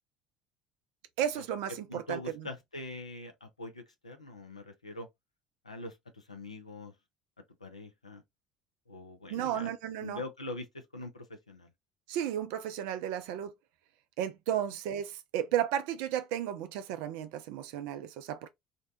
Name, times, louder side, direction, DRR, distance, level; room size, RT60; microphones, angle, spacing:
voice 1, 1.2-2.5 9.3-10.2 12.1-13.5 14.2-18.5, right 10 dB, 60° right, 0.3 m, -33 dB
voice 2, 1.9-5.1 5.6-6.9 7.6-8.2 8.9-9.7 10.0-11.7, left 2 dB, 85° left, 0.4 m, -43 dB
2.6 x 2.1 x 2.4 m
figure-of-eight pair, 60°, 3 cm